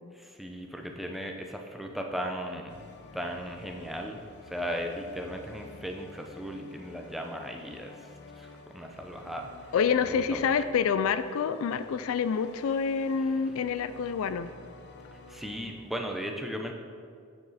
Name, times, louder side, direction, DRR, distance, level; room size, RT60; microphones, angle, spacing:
voice 1, 0.1-2.7 3.1-4.2 4.5-9.7 10.0-10.4 15.3-16.7, equal, ahead, 2 dB, 0.6 m, -37 dB
sound 1, 2.7-15.7, left 3 dB, 50° left, 0.7 m, -50 dB
voice 2, 9.7-14.5, left 6 dB, 65° left, 12 dB, 0.3 m, -27 dB
9.3 x 7.0 x 4.1 m, 2.3 s
head